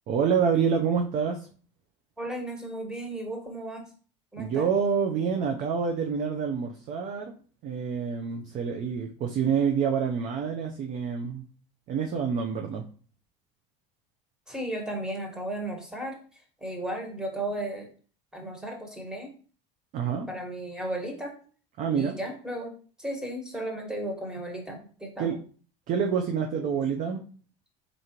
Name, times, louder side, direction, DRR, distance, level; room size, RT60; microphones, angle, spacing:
voice 1, 0.1-1.5 4.4-7.3 7.6-11.4 11.9-12.9 19.9-20.3 21.8-22.2 25.2-25.3 25.9-27.2, right 6 dB, 50° right, 4 dB, 0.6 m, -27 dB
voice 2, 2.2-3.9 4.3-4.7 14.5-16.2 16.6-17.9 18.3-19.3 20.3-21.3 21.9-22.7 23.0-25.4 26.5-27.0, right 1 dB, 5° right, 1 dB, 1.3 m, -35 dB
3.8 x 3.6 x 2.9 m, 0.41 s
supercardioid pair, 95°, 17 cm